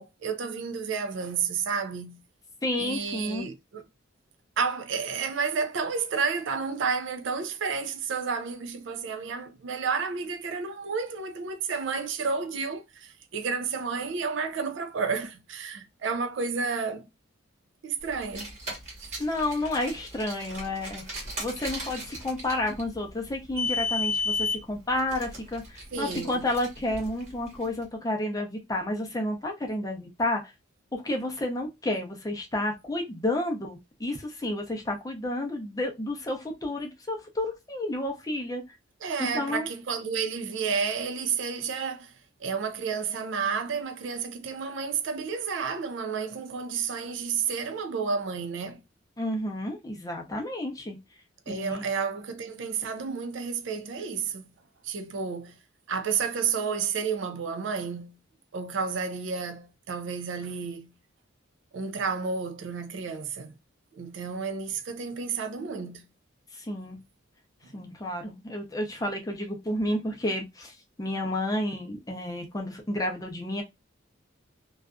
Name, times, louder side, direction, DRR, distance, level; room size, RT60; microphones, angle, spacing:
voice 1, 0.0-2.2 2.8-3.9 4.6-17.1 17.8-18.5 19.0-19.2 25.9-26.5 39.0-42.1 42.4-48.8 51.5-54.5 54.8-55.6 55.9-58.2 58.5-60.9 61.7-63.6 63.9-66.1, right 5 dB, 65° right, 0.4 m, -31 dB
voice 2, 2.6-3.5 19.2-30.4 30.9-38.6 39.2-39.7 49.2-51.0 51.5-51.9 66.5-67.0 67.7-70.7 71.0-73.6, left 1 dB, 20° left, 0.5 m, -31 dB
Car, 18.1-27.7, left 3 dB, 35° right, 1.2 m, -34 dB
2.6 x 2.3 x 2.2 m
head